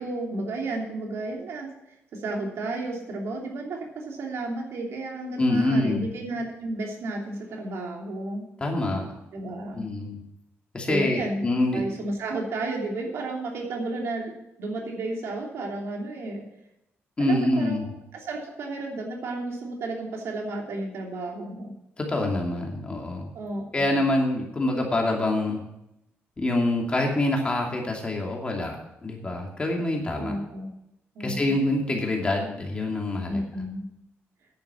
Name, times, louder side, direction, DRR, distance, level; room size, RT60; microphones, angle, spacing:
voice 1, 0.0-1.7 2.1-8.5 9.3-9.8 10.9-11.4 11.7-14.3 14.6-16.4 17.2-21.7 23.3-24.0 30.2-30.7 31.1-31.6 33.3-33.8, right 2 dB, 70° right, 0 dB, 3.0 m, -32 dB
voice 2, 5.4-6.1 8.6-9.1 9.7-10.2 10.7-11.8 17.2-17.9 22.0-23.3 23.7-25.6 26.4-30.4 31.2-33.4, left 1 dB, 25° left, 0 dB, 2.6 m, -26 dB
10.0 x 8.8 x 7.0 m, 0.84 s
cardioid pair, 140°, 5 cm